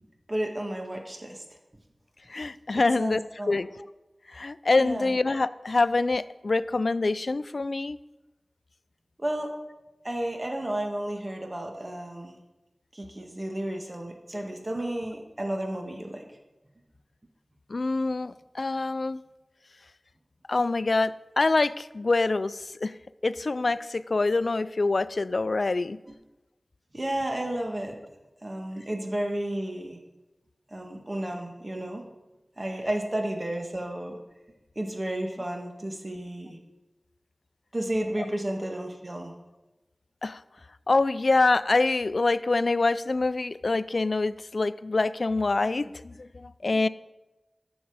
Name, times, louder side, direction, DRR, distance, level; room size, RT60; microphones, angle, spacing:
voice 1, 0.3-1.4 2.7-3.6 4.8-5.1 9.2-9.5 10.0-12.4 12.9-16.3 26.1-26.2 26.9-28.0 28.4-30.0 30.7-32.0 32.6-34.2 34.8-36.6 37.7-39.3, right 1 dB, 40° right, 2 dB, 1.8 m, -32 dB
voice 2, 2.3-3.2 3.5-3.7 4.3-8.0 17.7-19.2 20.5-22.9 23.2-26.0 40.2-40.4 40.9-46.9, left 3 dB, 75° left, 16 dB, 0.3 m, -25 dB
12.5 x 7.1 x 4.9 m, 1.0 s
wide cardioid pair, 45°, 0 cm